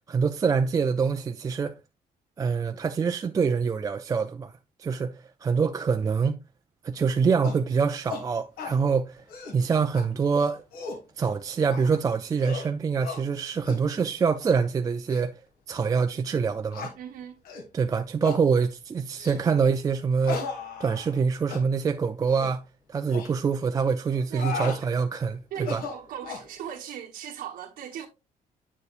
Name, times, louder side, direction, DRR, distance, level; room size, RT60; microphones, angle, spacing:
voice 1, 0.1-1.8 2.4-4.5 4.8-6.4 6.8-9.2 9.5-10.6 11.2-15.3 15.7-16.9 17.7-20.5 20.8-22.6 22.9-25.8, right 5 dB, 25° right, 0.4 m, -25 dB
sound 1, 7.4-7.6 8.1-8.2 8.6-8.8 9.2-9.6 9.9-10.0 10.5-11.0 11.7-12.0 12.4-12.7 13.0-13.2 13.7-13.8 14.4-14.6 15.1-15.2 15.8-15.9 16.7-16.9 17.4-17.7 18.2-18.4 19.2-19.4 20.2-21.2 21.5-21.6 22.3-22.5 23.1-23.3 24.1-24.8 25.5-26.5, left 4 dB, 80° left, 2.0 m, -36 dB
voice 2, 17.0-17.4 24.3-24.5 25.5-28.1, right 9 dB, 80° right, 1.2 m, -38 dB
8.2 x 6.7 x 2.5 m
cardioid pair, 160°, 15 cm